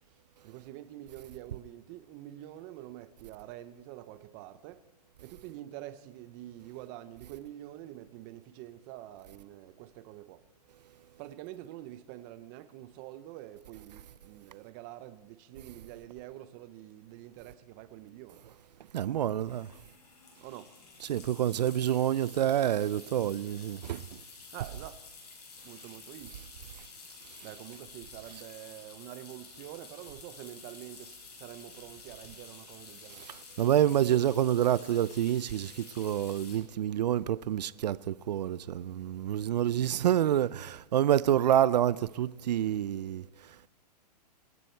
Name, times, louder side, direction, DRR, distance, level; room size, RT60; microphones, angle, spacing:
voice 1, 0.4-4.8 5.2-10.4 11.2-18.4 20.4-20.7 24.5-25.0 25.6-26.4 27.1-33.3, right 14 dB, 25° right, 0.7 m, -46 dB
sound 1, 17.5-17.6 17.8-18.0 19.4-36.6, left 4 dB, 70° left, 6.7 m, -51 dB
voice 2, 18.9-19.7 21.0-24.2 33.1-43.7, right 11 dB, 80° right, 0.5 m, -28 dB
25.0 x 12.5 x 4.5 m
hypercardioid pair, 165°, 21 cm